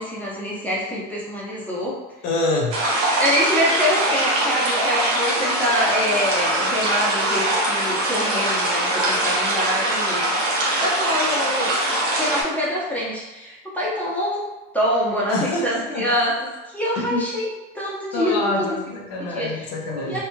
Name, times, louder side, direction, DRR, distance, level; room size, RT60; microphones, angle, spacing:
voice 1, 0.0-2.0 3.2-10.3 10.8-11.8 12.2-14.5 14.7-18.8 19.2-19.5 20.0-20.2, equal, 5° left, -7 dB, 0.8 m, -25 dB
voice 2, 2.2-2.8 15.3-16.0 17.0-17.2 18.1-20.2, left 2 dB, 60° left, -1 dB, 0.7 m, -25 dB
sound 1, 2.7-12.4, right 1 dB, 80° right, 0.8 m, -22 dB
3.1 x 2.1 x 2.3 m, 1.0 s
hypercardioid pair, 75°, 37 cm